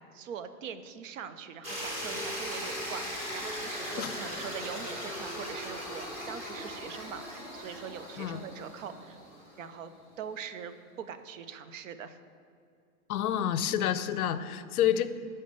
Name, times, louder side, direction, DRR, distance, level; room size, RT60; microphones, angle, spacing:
voice 1, 0.0-9.2 9.6-9.9 10.2-12.2, right 7 dB, 60° right, 11 dB, 0.5 m, -42 dB
sound 1, 1.6-9.6, equal, 15° right, 0.9 m, -38 dB
voice 2, 13.1-15.1, left 10 dB, 70° left, 13 dB, 0.5 m, -28 dB
6.7 x 4.2 x 5.1 m, 2.4 s
hypercardioid pair, 150°, 45 cm